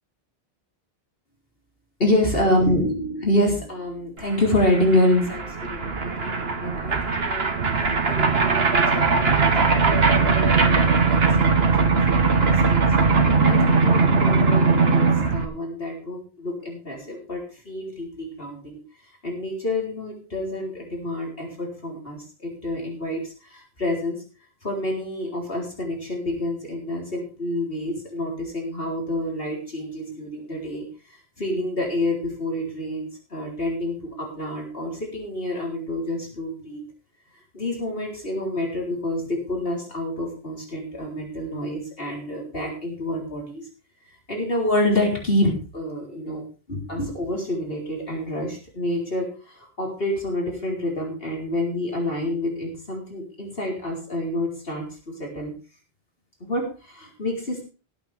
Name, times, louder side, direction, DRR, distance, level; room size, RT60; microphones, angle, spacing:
voice 1, 2.0-7.4 8.1-11.5 11.9-12.8 13.4-15.1 15.3-18.8 19.2-24.2 24.6-30.8 31.4-36.8 37.5-43.6 44.3-55.5 56.4-57.6, left 1 dB, 65° left, -1 dB, 4.1 m, -27 dB
sound 1, 4.3-4.4 4.6-15.4, right 4 dB, 75° right, 1.7 m, -20 dB
19.0 x 8.7 x 3.5 m, 0.33 s
omnidirectional pair, 1.1 m